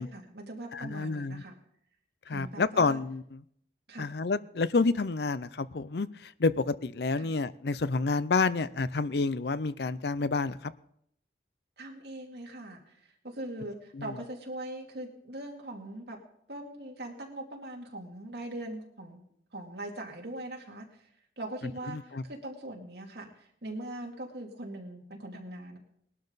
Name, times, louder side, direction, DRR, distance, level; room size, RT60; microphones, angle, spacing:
voice 1, 0.0-1.6 2.3-3.0 3.9-4.1 7.2-7.3 11.8-16.2 16.5-19.2 19.5-21.1 21.4-25.8, right 1 dB, 60° right, 0 dB, 2.6 m, -41 dB
voice 2, 0.7-1.4 2.3-3.4 4.0-10.7 13.9-14.1 21.9-22.2, left 3 dB, 60° left, 16 dB, 0.6 m, -29 dB
20.0 x 12.0 x 4.1 m, 0.68 s
head